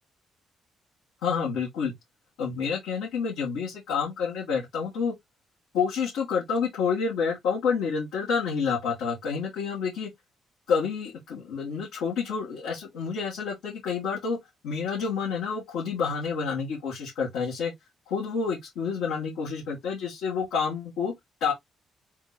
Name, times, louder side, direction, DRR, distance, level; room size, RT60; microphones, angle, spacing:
voice 1, 1.2-1.9 2.4-5.1 5.7-10.1 10.7-14.4 14.6-17.7 18.1-21.1 21.4-21.5, left 6 dB, 90° left, 1.9 m, -28 dB
3.7 x 3.0 x 4.0 m
cardioid pair, 90°, 0 cm